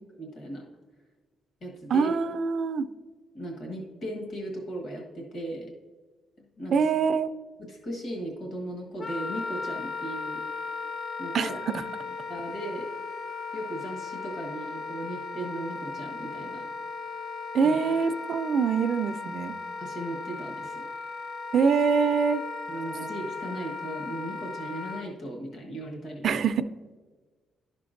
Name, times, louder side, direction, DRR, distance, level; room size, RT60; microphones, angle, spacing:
voice 1, 0.2-0.6 1.6-2.1 3.3-5.7 6.6-6.8 7.6-10.4 11.2-11.5 12.3-12.9 13.5-16.7 17.6-17.7 19.8-20.9 22.7-26.2, right 1 dB, 45° left, -1 dB, 1.4 m, -37 dB
voice 2, 1.9-2.9 6.7-7.3 11.3-11.8 17.5-19.5 21.5-22.4 26.2-26.7, right 5 dB, 45° right, 9 dB, 0.4 m, -24 dB
Wind instrument woodwind instrument, 9.0-25.1, left 4 dB, 30° left, 0.4 m, -36 dB
11.5 x 5.8 x 2.5 m, 1.4 s
cardioid pair, 175°, 0 cm